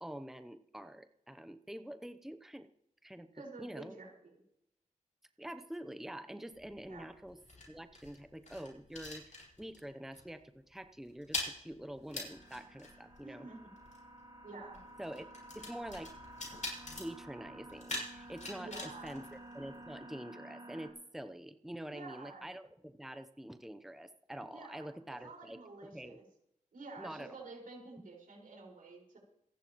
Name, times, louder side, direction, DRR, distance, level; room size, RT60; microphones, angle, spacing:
voice 1, 0.0-2.7 3.0-3.3 3.6-4.0 5.4-7.4 7.7-13.5 15.0-15.3 15.5-16.1 16.9-26.2 27.0-27.5, right 1 dB, ahead, 9 dB, 0.8 m, -46 dB
voice 2, 3.3-4.4 6.9-7.1 13.2-13.6 14.4-14.8 18.5-19.2 21.9-22.4 24.5-26.2 26.7-29.2, right 3 dB, 90° right, -1 dB, 5.3 m, -50 dB
sound 1, 6.5-9.9 10.1-10.4 10.7-20.1, left 2 dB, 60° left, 6.6 m, -45 dB
sound 2, 12.2-20.9, right 1 dB, 30° right, 3.1 m, -52 dB
27.0 x 11.0 x 3.1 m, 0.78 s
wide cardioid pair, 80°, 14 cm